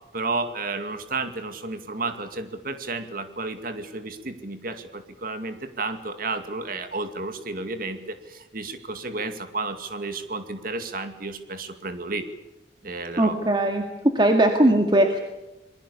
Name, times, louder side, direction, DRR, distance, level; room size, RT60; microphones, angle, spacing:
voice 1, 0.1-12.3 12.8-13.4, right 3 dB, 55° right, 8 dB, 2.4 m, -32 dB
voice 2, 13.2-13.8 14.2-15.2, right 1 dB, 25° right, 4 dB, 2.0 m, -19 dB
27.0 x 22.0 x 7.1 m, 1.0 s
head